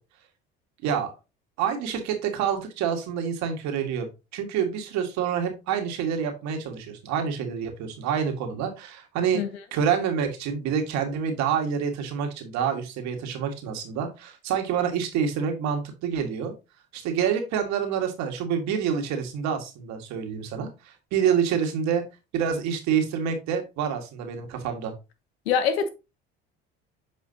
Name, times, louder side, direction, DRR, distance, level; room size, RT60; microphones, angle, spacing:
voice 1, 0.8-1.1 1.6-9.4 9.7-16.5 16.9-22.0 22.3-24.9, right 7 dB, 65° right, 1.9 m, -27 dB
voice 2, 25.5-25.9, left 7 dB, 85° left, 1.1 m, -23 dB
7.9 x 5.0 x 2.8 m
hypercardioid pair, 70°, 30 cm